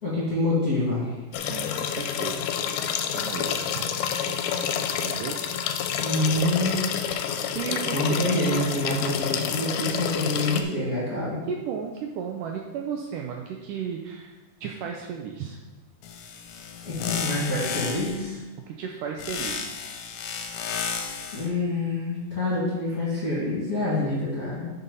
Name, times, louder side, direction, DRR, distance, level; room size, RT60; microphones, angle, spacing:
voice 1, 0.0-1.2 6.0-6.9 7.9-11.4 16.8-18.4 20.9-24.7, left 2 dB, 30° left, -7 dB, 2.0 m, -27 dB
sound 1, 1.3-10.6, left 8 dB, 90° left, 2.6 m, -28 dB
voice 2, 1.3-2.5 3.0-3.9 5.0-5.7 7.4-8.5 11.5-15.6 18.7-19.8, right 7 dB, 80° right, 1 dB, 2.0 m, -35 dB
sound 2, 16.0-18.3 19.2-21.5, left 6 dB, 75° left, 2.2 m, -33 dB
11.0 x 5.4 x 4.1 m, 1.1 s
omnidirectional pair, 4.3 m